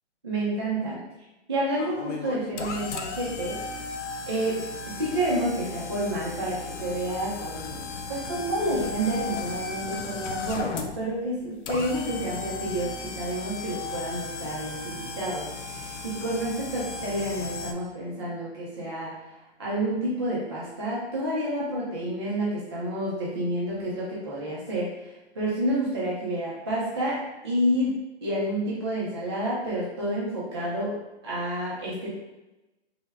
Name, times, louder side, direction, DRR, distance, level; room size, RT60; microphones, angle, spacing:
voice 1, 0.2-1.0 1.5-3.5 4.3-4.6 5.0-7.8 8.1-19.1 19.6-24.9 25.4-27.9 28.2-30.9 31.2-32.1, right 1 dB, 25° right, -7 dB, 0.3 m, -29 dB
sound 1, 1.8-17.7, left 3 dB, 90° left, 0.5 m, -36 dB
3.3 x 2.1 x 3.3 m, 1.0 s
hypercardioid pair, 160°, 35 cm